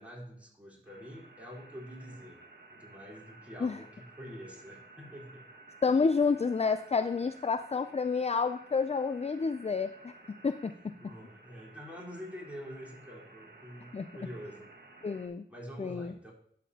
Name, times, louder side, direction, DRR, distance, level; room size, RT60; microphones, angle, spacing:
voice 1, 0.0-2.4 2.7-5.5 10.7-14.7 15.5-16.3, equal, 5° right, -5 dB, 3.9 m, -46 dB
sound 1, 0.8-15.3, right 2 dB, 55° right, 1.5 m, -55 dB
voice 2, 5.8-10.1 10.4-10.7 13.9-14.1 15.0-15.4 15.8-16.1, left 5 dB, 30° left, 10 dB, 0.4 m, -29 dB
12.0 x 7.4 x 2.8 m, 0.68 s
wide cardioid pair, 65°, 21 cm